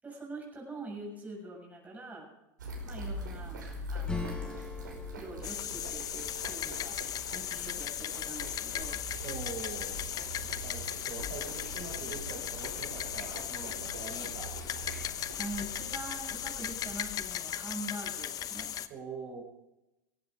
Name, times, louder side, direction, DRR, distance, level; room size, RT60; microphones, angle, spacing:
voice 1, 0.0-2.3 2.9-3.6 3.9-4.6 5.2-9.0 15.4-18.7, right 2 dB, 15° right, -2 dB, 7.0 m, -44 dB
sound 1, 2.6-17.4, left 1 dB, 85° right, 5.5 m, -43 dB
Acoustic guitar / Strum, 4.0-8.3, left 1 dB, 10° left, 2.7 m, -45 dB
sound 2, 5.4-18.9, left 10 dB, 40° left, 1.0 m, -37 dB
voice 2, 9.2-9.9 10.4-14.5 18.9-19.4, right 5 dB, 55° right, -1 dB, 6.6 m, -43 dB
17.0 x 16.0 x 5.1 m, 0.93 s
hypercardioid pair, 90°, 10 cm